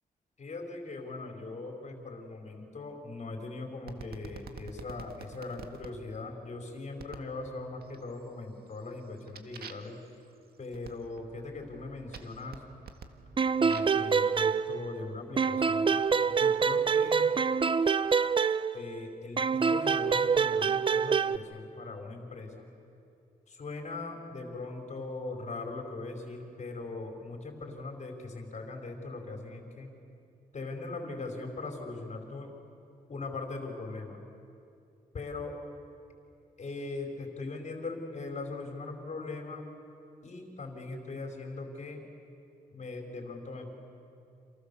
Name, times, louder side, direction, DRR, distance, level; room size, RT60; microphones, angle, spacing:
voice 1, 0.4-10.0 10.6-12.6 13.6-15.9 16.3-17.3 18.7-22.7 23.5-29.9 30.5-32.5 33.1-34.2 35.1-35.6 36.6-39.6 40.2-42.0 42.7-43.7, left 3 dB, 50° left, 3 dB, 4.9 m, -40 dB
sound 1, 3.9-5.9 7.0-7.3 7.8-8.3 8.7-14.1 14.8-16.1, right 5 dB, 80° right, 1.8 m, -49 dB
sound 2, 13.4-15.1 15.4-19.0 19.4-21.4, right 6 dB, 35° right, 0.6 m, -26 dB
29.0 x 28.0 x 7.1 m, 2.6 s
wide cardioid pair, 115°, 16 cm